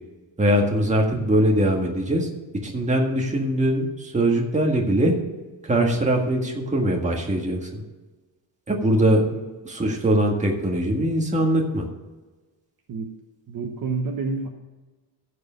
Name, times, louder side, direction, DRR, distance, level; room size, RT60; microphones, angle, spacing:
voice 1, 0.4-2.3 2.6-5.1 5.6-7.8 8.7-9.2 9.6-11.8, right 1 dB, 15° right, 0 dB, 1.7 m, -21 dB
voice 2, 13.5-14.5, right 4 dB, 50° right, 3 dB, 1.1 m, -28 dB
14.5 x 4.9 x 6.3 m, 1.2 s
wide cardioid pair, 170°, 43 cm